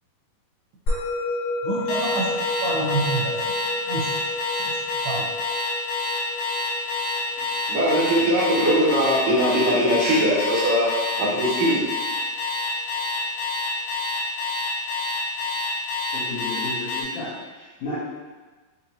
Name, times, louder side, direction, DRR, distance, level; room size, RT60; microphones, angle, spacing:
Musical instrument, 0.9-11.5, left 1 dB, 50° left, 1.4 m, -32 dB
voice 1, 1.6-3.4 3.9-4.3 4.6-4.7 5.0-5.3, right 3 dB, 90° right, -4 dB, 2.8 m, -28 dB
Alarm, 1.9-17.0, left 3 dB, 85° left, 2.7 m, -27 dB
voice 2, 7.7-10.9 11.2-11.8, equal, 60° right, -10 dB, 1.9 m, -21 dB
voice 3, 16.1-18.0, left 2 dB, 65° left, -13 dB, 2.2 m, -33 dB
6.9 x 2.6 x 2.8 m, 1.3 s
omnidirectional pair, 4.2 m